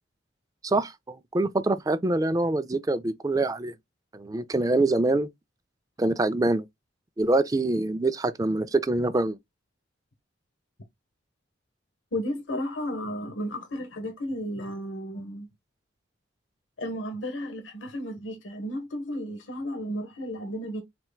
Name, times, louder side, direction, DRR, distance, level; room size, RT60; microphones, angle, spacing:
voice 1, 0.6-3.7 4.1-5.3 6.0-6.6 7.2-9.4, right 2 dB, 20° right, 0.3 m, -25 dB
voice 2, 12.1-15.5 16.8-20.8, equal, 70° left, 1.0 m, -33 dB
4.4 x 3.4 x 2.3 m
head